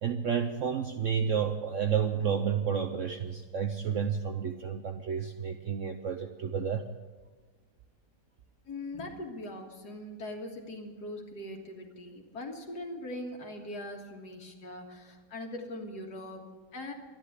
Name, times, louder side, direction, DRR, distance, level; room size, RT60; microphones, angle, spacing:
voice 1, 0.0-6.9, right 7 dB, 60° right, 6 dB, 0.8 m, -31 dB
voice 2, 8.7-16.9, left 1 dB, 60° left, 2 dB, 2.3 m, -41 dB
13.0 x 11.0 x 8.2 m, 1.3 s
omnidirectional pair, 2.0 m